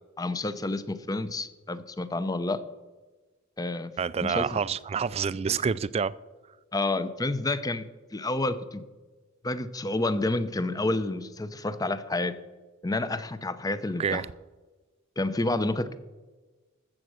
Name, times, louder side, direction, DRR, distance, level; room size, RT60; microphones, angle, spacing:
voice 1, 0.2-2.6 3.6-3.9 4.2-4.6 6.7-7.8 8.1-8.8 9.4-12.4 12.8-14.2 15.2-15.9, left 2 dB, 20° left, 0.6 m, -29 dB
voice 2, 4.0-6.1 14.0-14.3, right 6 dB, 30° right, 0.3 m, -28 dB
13.5 x 7.6 x 6.3 m
head